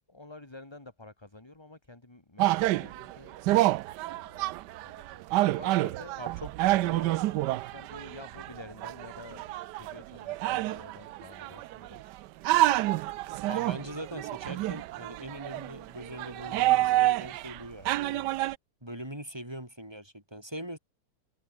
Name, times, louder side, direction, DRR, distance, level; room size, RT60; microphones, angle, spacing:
voice 1, 0.1-3.8 4.1-4.5 4.8-6.2 6.8-12.2, left 2 dB, 10° left, 2.4 m, -50 dB
sound 1, 2.4-12.0 12.4-17.6 17.8-18.5, right 16 dB, 85° right, 0.9 m, -28 dB
voice 2, 6.2-7.1 13.5-18.3 18.8-20.8, equal, 10° right, 5.4 m, -42 dB
omnidirectional pair, 2.4 m